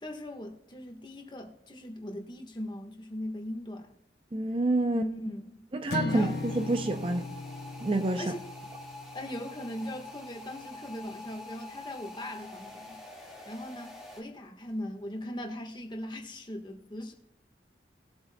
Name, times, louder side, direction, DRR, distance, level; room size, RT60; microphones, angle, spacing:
voice 1, 0.0-3.9 4.9-5.6 6.0-6.3 8.2-8.4 9.1-13.0 13.4-17.1, left 1 dB, 25° left, 1.4 m, -39 dB
voice 2, 4.3-5.0 5.7-7.2 7.8-8.3, right 2 dB, 30° right, 0.5 m, -28 dB
sound 1, 5.9-10.2, left 3 dB, 60° left, 0.7 m, -38 dB
sound 2, 6.1-14.2, left 2 dB, ahead, 1.8 m, -46 dB
20.0 x 7.9 x 2.2 m
head